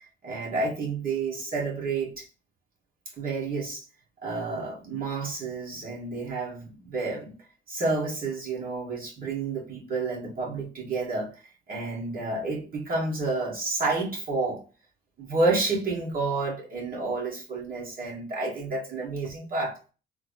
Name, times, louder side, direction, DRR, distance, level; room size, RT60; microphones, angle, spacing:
voice 1, 0.2-2.2 3.2-3.8 4.2-7.4 7.7-11.3 11.7-14.6 15.2-19.8, right 3 dB, 45° right, 1.7 m, -30 dB
3.6 x 2.2 x 3.8 m
cardioid pair, 90°, 20 cm